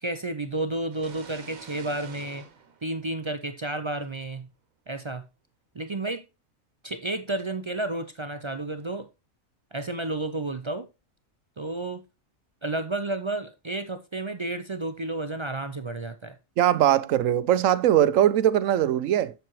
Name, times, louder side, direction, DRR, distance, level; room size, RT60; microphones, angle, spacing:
voice 1, 0.0-2.5 2.8-4.5 4.9-5.2 5.7-6.2 6.8-9.1 9.7-10.9 11.6-12.0 12.6-16.4, right 2 dB, 40° right, 0.4 m, -31 dB
sound 1, 0.9-3.7, right 6 dB, 90° right, 1.5 m, -48 dB
voice 2, 16.6-19.3, right 11 dB, 75° right, 1.0 m, -21 dB
7.8 x 7.5 x 3.0 m
omnidirectional pair, 1.4 m